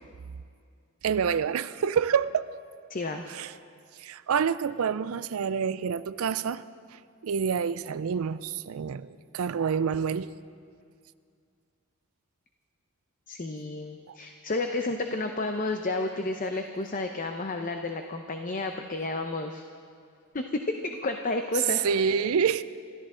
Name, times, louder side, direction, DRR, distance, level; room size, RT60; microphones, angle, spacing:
voice 1, 1.0-2.4 3.3-3.5 4.0-6.6 6.9-10.3 14.1-14.2 21.8-22.6, right 6 dB, 70° right, 15 dB, 0.4 m, -27 dB
voice 2, 2.9-3.3 13.3-19.6 20.3-21.8, left 2 dB, 40° left, 5 dB, 0.7 m, -31 dB
28.5 x 13.5 x 3.8 m, 2.3 s
head